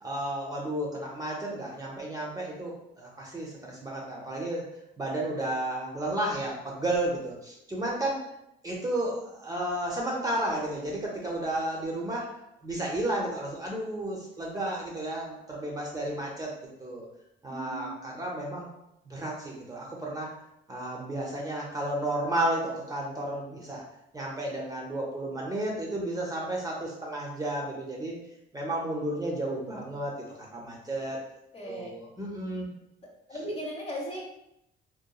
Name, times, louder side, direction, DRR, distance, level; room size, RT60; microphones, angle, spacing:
voice 1, 0.0-4.6 5.0-8.2 8.6-12.3 12.6-16.5 16.8-17.1 17.4-18.7 19.0-20.3 20.7-23.8 24.1-28.2 28.5-30.1 30.4-31.2 31.7-32.7, right 1 dB, 20° right, -3 dB, 0.6 m, -32 dB
voice 2, 17.5-18.0 31.5-31.9 33.3-34.3, equal, 30° left, -2 dB, 0.7 m, -37 dB
2.9 x 2.2 x 2.2 m, 0.82 s
cardioid pair, 90°, 20 cm